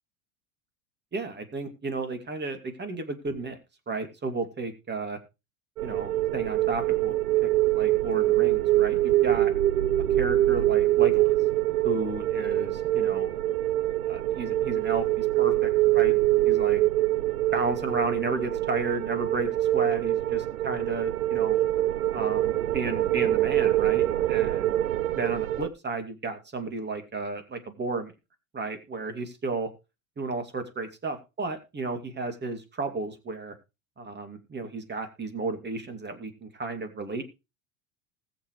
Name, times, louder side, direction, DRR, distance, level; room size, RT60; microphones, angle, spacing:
voice 1, 1.1-3.6 3.9-5.2 5.8-7.2 7.4-9.5 10.2-11.3 11.8-13.3 14.1-16.1 16.4-16.8 17.5-21.6 22.1-24.7 25.1-28.1 28.5-29.7 30.2-33.5 34.0-37.2, right 3 dB, 25° right, 7 dB, 2.6 m, -33 dB
sound 1, 5.8-25.7, right 15 dB, 80° right, 0.7 m, -24 dB
20.0 x 7.3 x 3.2 m, 0.27 s
hypercardioid pair, 85°, 42 cm